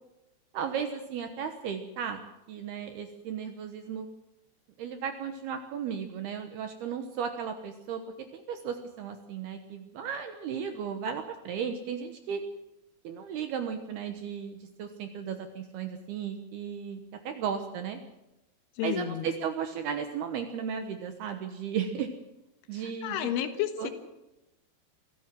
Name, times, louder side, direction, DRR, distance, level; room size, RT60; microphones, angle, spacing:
voice 1, 0.5-2.2 2.5-4.1 4.8-12.4 13.0-18.0 18.8-22.1 22.7-23.3 23.8-23.9, right 7 dB, 70° right, 7 dB, 2.6 m, -35 dB
voice 2, 18.8-19.3 23.0-23.9, left 11 dB, 75° left, 9 dB, 3.7 m, -31 dB
24.5 x 15.0 x 7.5 m, 0.95 s
omnidirectional pair, 5.8 m